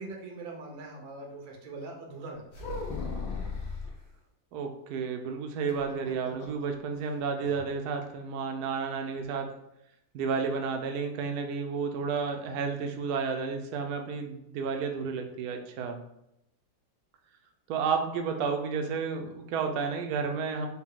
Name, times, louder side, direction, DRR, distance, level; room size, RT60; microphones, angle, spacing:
voice 1, 0.0-2.6, right 2 dB, 90° right, 1 dB, 1.6 m, -42 dB
sound 1, 2.5-4.0 5.7-6.6 6.9-7.0 7.4-7.7, left 4 dB, 80° left, 1.5 m, -36 dB
voice 2, 4.5-9.5 10.1-16.0 17.7-20.7, right 5 dB, 70° right, 4 dB, 0.9 m, -31 dB
4.3 x 2.2 x 3.6 m, 0.81 s
omnidirectional pair, 2.1 m